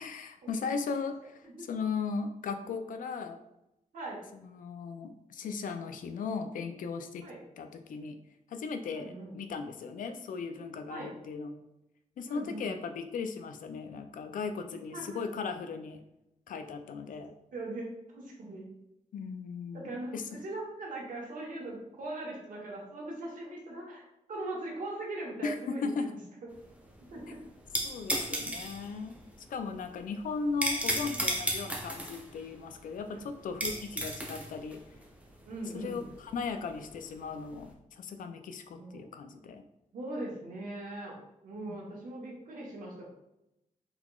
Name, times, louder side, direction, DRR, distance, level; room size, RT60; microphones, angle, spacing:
voice 1, 0.0-3.4 4.3-7.3 7.6-8.2 8.5-11.6 12.2-16.0 16.5-17.3 19.1-20.2 25.4-26.1 27.8-29.1 29.5-34.8 35.7-39.6 41.7-41.8, left 5 dB, 90° left, 8 dB, 0.4 m, -37 dB
voice 2, 3.9-4.2 7.2-7.4 8.9-9.3 10.9-11.1 12.3-12.7 14.9-15.0 17.5-18.7 19.7-24.0 24.3-26.1 27.1-27.4 33.1-33.2 35.5-36.0 38.7-39.1 39.9-41.2 41.4-43.1, right 2 dB, 85° right, -3 dB, 1.1 m, -40 dB
sound 1, 26.5-37.6, right 1 dB, 10° right, 0.6 m, -35 dB
3.9 x 2.9 x 2.3 m, 0.87 s
wide cardioid pair, 110°, 13 cm